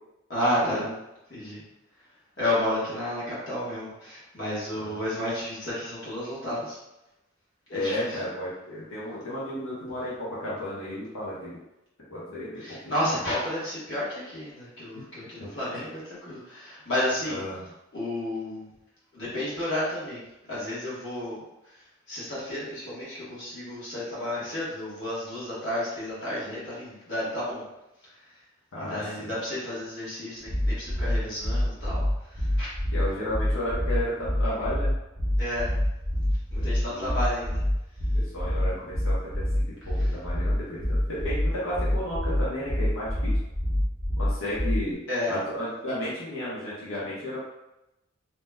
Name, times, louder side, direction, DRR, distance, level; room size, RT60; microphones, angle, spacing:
voice 1, 0.3-0.9 1.3-1.6 2.4-6.8 7.7-8.1 12.6-17.4 17.9-18.7 19.1-20.2 20.5-21.4 22.1-27.6 28.8-32.0 32.3-32.7 35.4-35.7 36.5-37.6 45.1-45.4, left 1 dB, 55° left, -9 dB, 1.2 m, -31 dB
voice 2, 7.7-11.6 12.1-12.8 13.0-13.2 15.4-15.5 17.3-17.7 28.7-29.3 32.9-34.9 36.5-36.6 36.9-37.2 38.1-43.4 44.2-45.0 45.3-47.4, left 1 dB, 75° left, -8 dB, 0.9 m, -33 dB
sound 1, 30.5-44.9, left 1 dB, 5° left, 0.7 m, -26 dB
2.8 x 2.1 x 3.4 m, 0.92 s
head